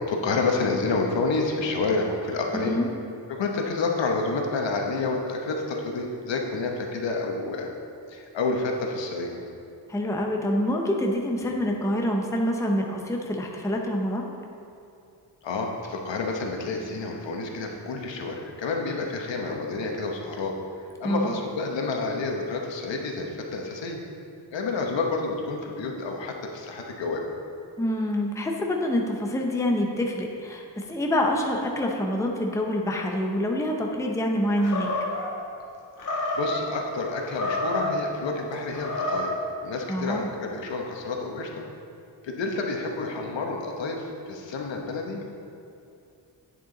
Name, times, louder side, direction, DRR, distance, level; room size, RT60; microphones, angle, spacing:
voice 1, 0.1-2.8 3.3-7.7 8.1-9.3 15.4-24.0 24.5-27.4 36.4-39.3 39.6-41.6 42.2-45.3, left 3 dB, 90° left, 1 dB, 1.1 m, -29 dB
voice 2, 2.5-2.9 9.9-14.3 21.0-21.3 27.8-34.9 39.9-40.3, left 1 dB, 5° left, 1 dB, 0.6 m, -26 dB
Animal, 34.6-35.3 36.0-36.6 37.2-38.0 38.7-39.4, left 2 dB, 45° left, 1.4 m, -28 dB
8.8 x 6.7 x 3.9 m, 2.6 s
wide cardioid pair, 165°, 43 cm